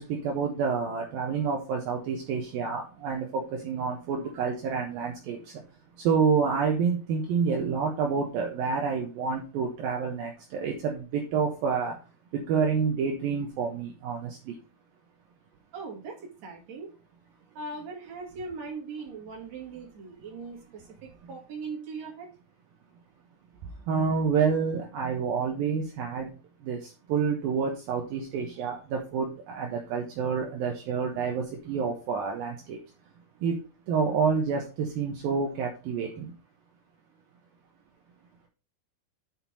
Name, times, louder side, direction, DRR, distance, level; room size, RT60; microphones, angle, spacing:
voice 1, 0.0-5.4 6.0-12.0 12.5-14.5 23.9-26.3 26.6-32.8 33.4-33.6 33.9-36.3, right 5 dB, 70° right, 0 dB, 2.9 m, -28 dB
voice 2, 15.7-16.9 17.5-22.3 28.6-28.7, right 4 dB, 50° right, 0 dB, 3.2 m, -40 dB
6.7 x 6.0 x 5.3 m, 0.33 s
omnidirectional pair, 4.5 m